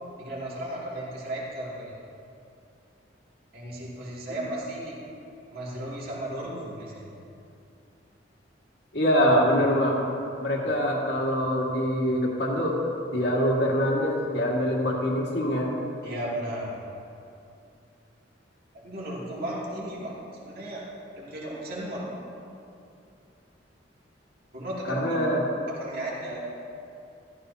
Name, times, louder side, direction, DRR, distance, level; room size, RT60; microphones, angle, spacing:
voice 1, 0.2-2.0 3.5-5.0 5.5-7.1 10.6-10.7 16.0-16.8 18.7-20.1 20.4-20.8 21.2-22.2 24.5-25.2 25.7-26.4, right 1 dB, 50° right, -6 dB, 2.6 m, -35 dB
voice 2, 8.9-10.0 10.4-12.7 13.1-15.7 24.9-25.5, equal, 60° left, -2 dB, 2.0 m, -24 dB
14.0 x 14.0 x 2.8 m, 2.7 s
head